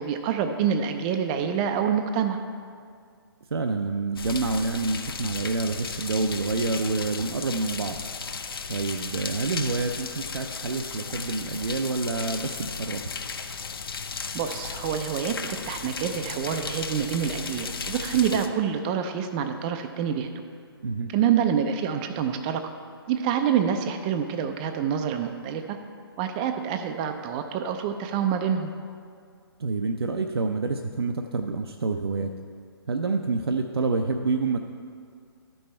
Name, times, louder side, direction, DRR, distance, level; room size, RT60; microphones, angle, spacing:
voice 1, 0.0-2.4 14.3-20.3 21.1-22.6 23.1-25.8 26.2-28.7, right 8 dB, 20° right, 6 dB, 0.4 m, -26 dB
voice 2, 3.5-8.0 8.7-13.1 18.3-18.4 20.8-21.1 29.6-32.3 32.9-34.6, right 3 dB, 70° right, 5 dB, 0.5 m, -27 dB
sound 1, 4.2-18.5, left 5 dB, 60° left, 0.7 m, -35 dB
12.5 x 5.5 x 4.3 m, 2.2 s
figure-of-eight pair, 140°, 14 cm